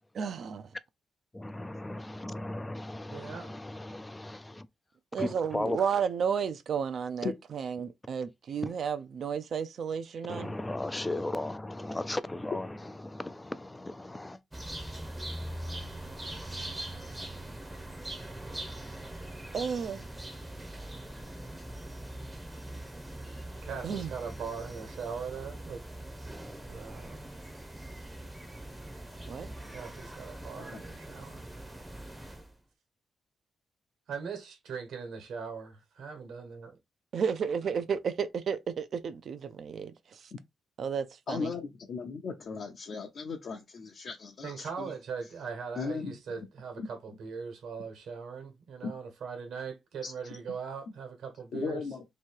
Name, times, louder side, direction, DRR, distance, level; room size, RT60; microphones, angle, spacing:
voice 1, 0.1-0.7 5.1-10.5 19.5-20.0 23.8-24.1 29.3-29.5 37.1-40.3 40.8-41.5, right 7 dB, 55° right, 0.4 m, -32 dB
voice 2, 1.3-4.7 5.2-5.8 8.6-8.7 10.3-14.4, left 2 dB, 10° left, 0.3 m, -36 dB
voice 3, 3.1-3.5 23.6-25.8 26.6-27.3 29.7-31.5 34.1-36.8 44.4-51.8, right 6 dB, 70° right, 1.3 m, -40 dB
sound 1, 14.5-32.5, right 1 dB, 10° right, 0.7 m, -42 dB
voice 4, 41.3-44.9 45.8-46.2 46.8-46.9 48.8-48.9 50.0-50.1 51.5-52.0, left 5 dB, 55° left, 0.7 m, -37 dB
3.0 x 2.8 x 4.5 m
cardioid pair, 145°, 0 cm